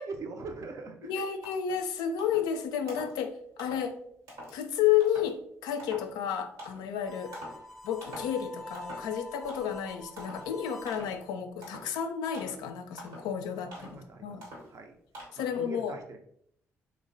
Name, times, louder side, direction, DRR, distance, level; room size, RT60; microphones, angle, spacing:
voice 1, 0.0-1.2 13.5-14.3 14.7-14.9 15.4-16.2, right 4 dB, 50° right, 5 dB, 0.5 m, -42 dB
voice 2, 1.0-4.0 4.5-7.3 7.8-14.4 15.3-15.9, left 9 dB, 75° left, 6 dB, 0.3 m, -31 dB
sound 1, 1.0-1.1 1.4-1.8 2.2-2.5 2.9-3.2 3.6-3.9 4.3-4.6 5.0-5.3 5.8-6.1 6.6-6.9 7.3-7.7 8.0-8.4 8.7-9.2 9.5-9.8 10.2-10.5 10.9-11.2 11.6-11.9 12.3-12.7 13.0-13.3 13.7-14.0 14.4-14.8 15.1-15.3, equal, 85° right, 1.1 m, -45 dB
Harmonica, 7.0-11.1, left 2 dB, 5° left, 0.5 m, -46 dB
3.0 x 2.1 x 2.5 m, 0.69 s
hypercardioid pair, 50°, 7 cm